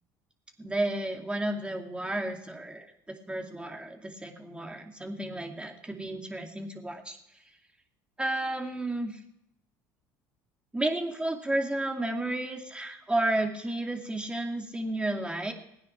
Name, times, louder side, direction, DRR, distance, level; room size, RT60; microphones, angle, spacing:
voice 1, 0.6-7.2 8.2-9.2 10.7-15.5, right 1 dB, 10° right, 2 dB, 2.5 m, -32 dB
17.5 x 9.7 x 6.0 m, 0.81 s
hypercardioid pair, 80°, 10 cm